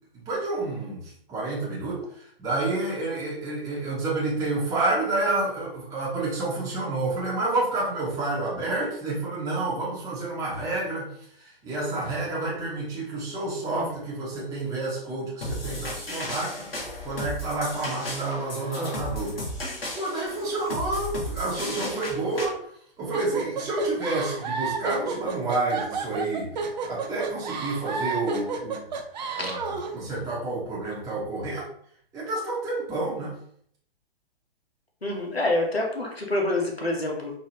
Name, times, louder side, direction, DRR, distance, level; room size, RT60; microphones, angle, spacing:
voice 1, 0.1-16.7 17.0-19.5 20.0-22.6 23.0-28.8 29.4-31.7 32.1-33.4, right 2 dB, 10° right, -6 dB, 1.1 m, -29 dB
sound 1, 15.4-22.5, left 1 dB, 70° left, 1.6 m, -34 dB
voice 2, 18.8-19.1 29.4-29.6 35.0-37.4, left 2 dB, 85° left, 0 dB, 1.3 m, -27 dB
sound 2, 23.1-29.9, right 5 dB, 45° right, 0.6 m, -31 dB
4.5 x 2.9 x 3.0 m, 0.62 s
figure-of-eight pair, 120°, 30 cm